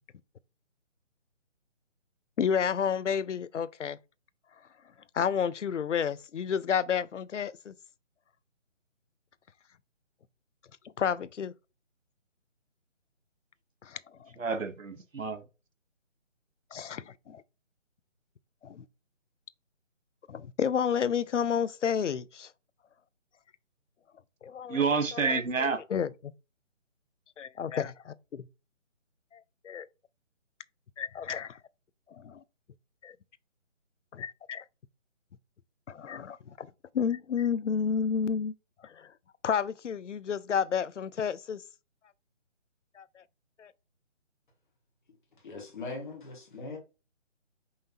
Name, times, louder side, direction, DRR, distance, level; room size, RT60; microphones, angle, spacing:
voice 1, 2.4-4.0 5.1-7.7 11.0-11.5 13.8-14.3 16.7-17.4 18.6-18.8 20.3-22.5 24.4-24.9 25.1-26.1 27.4-27.9 29.3-29.4 29.6-29.9 31.0-31.6 32.2-32.4 33.0-33.1 34.1-34.6 35.9-36.7 36.9-38.5 38.8-39.1 39.4-41.6 43.0-43.2 43.6-43.7, left 7 dB, 70° left, 0.6 m, -31 dB
voice 2, 14.4-15.4 24.7-25.8, right 5 dB, 90° right, 1.2 m, -29 dB
voice 3, 45.4-46.8, left 3 dB, 40° left, 1.6 m, -40 dB
5.6 x 3.2 x 2.7 m
figure-of-eight pair, 160°, 38 cm